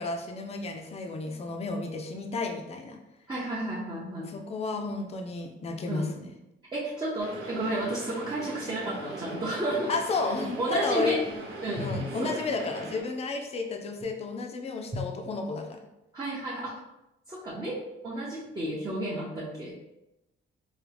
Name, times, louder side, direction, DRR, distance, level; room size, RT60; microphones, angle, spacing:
voice 1, 0.0-3.0 4.3-6.3 9.9-11.2 11.8-15.8, left 3 dB, 30° left, 3 dB, 0.4 m, -32 dB
voice 2, 3.3-4.3 5.9-6.1 6.7-9.9 10.6-11.2 11.6-12.4 14.9-15.0 16.1-16.8 17.3-19.9, right 1 dB, 20° right, -6 dB, 0.7 m, -32 dB
sound 1, 7.2-13.0, right 1 dB, 80° right, 1.0 m, -40 dB
4.7 x 2.3 x 3.3 m, 0.92 s
cardioid pair, 155°, 21 cm